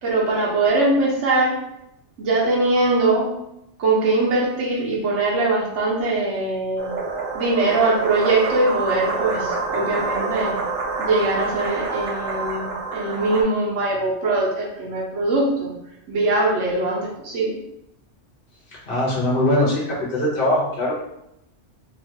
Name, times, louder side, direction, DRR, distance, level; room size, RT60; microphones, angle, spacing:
voice 1, 0.0-1.5 2.2-3.3 3.8-6.9 7.3-10.6 11.0-15.7 16.1-17.6, right 2 dB, 80° right, -3 dB, 1.1 m, -21 dB
sound 1, 6.8-13.4, right 3 dB, 55° right, 0.7 m, -27 dB
voice 2, 18.9-20.9, left 1 dB, 50° left, -6 dB, 1.1 m, -21 dB
2.9 x 2.5 x 2.7 m, 0.82 s
omnidirectional pair, 1.2 m